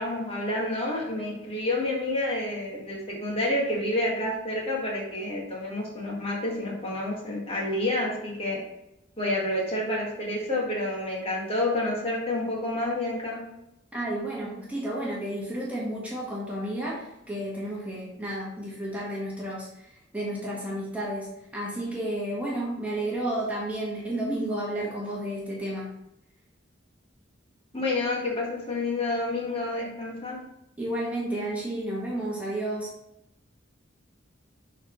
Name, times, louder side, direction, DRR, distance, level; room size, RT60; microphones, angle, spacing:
voice 1, 0.0-8.6 9.2-13.4 27.7-30.4, left 1 dB, 30° left, -3 dB, 1.9 m, -29 dB
voice 2, 13.9-25.9 30.8-32.9, right 1 dB, 10° right, -5 dB, 1.6 m, -32 dB
10.5 x 4.3 x 3.2 m, 0.86 s
head